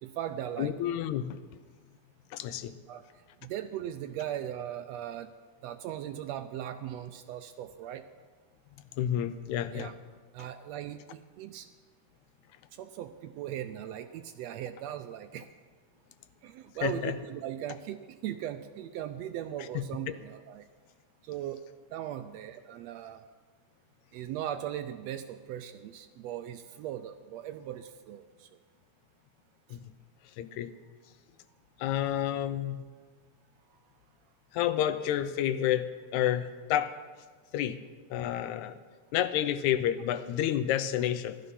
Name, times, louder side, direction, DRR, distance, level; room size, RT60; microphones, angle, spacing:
voice 1, 0.0-0.7 2.9-3.0 3.4-5.3 5.6-8.1 9.7-9.9 10.3-11.7 12.8-15.5 16.4-20.6 21.3-21.6 21.9-23.2 24.1-28.5, right 11 dB, 80° right, 9 dB, 1.6 m, -38 dB
voice 2, 0.6-1.4 2.3-2.8 9.0-9.9 16.8-17.1 19.8-19.9 29.7-29.8 30.4-30.7 31.8-32.8 34.5-37.0 37.5-37.8 38.1-38.8 39.1-41.4, left 11 dB, 85° left, 12 dB, 2.0 m, -30 dB
15.0 x 12.0 x 5.5 m, 1.5 s
omnidirectional pair, 3.3 m